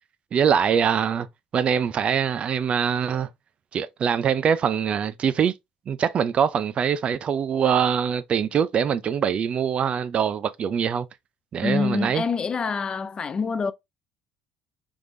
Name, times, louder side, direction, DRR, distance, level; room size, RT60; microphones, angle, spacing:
voice 1, 0.3-1.3 1.5-3.3 3.7-5.5 5.9-11.1 11.5-12.2, right 7 dB, 45° right, 0.4 m, -23 dB
voice 2, 11.6-13.7, left 5 dB, 30° left, 0.3 m, -26 dB
3.4 x 3.3 x 2.5 m
supercardioid pair, 90°, 3 cm